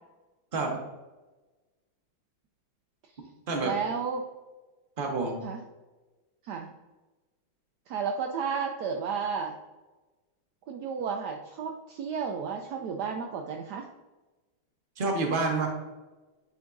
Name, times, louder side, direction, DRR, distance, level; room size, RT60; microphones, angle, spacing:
voice 1, 3.6-4.3 5.4-5.6 6.4-6.7 7.9-9.5 10.7-13.9, right 6 dB, 80° right, 2 dB, 0.9 m, -32 dB
voice 2, 5.0-5.4 15.0-15.7, right 3 dB, 35° right, 0 dB, 1.0 m, -28 dB
8.5 x 4.7 x 2.6 m, 1.2 s
omnidirectional pair, 2.3 m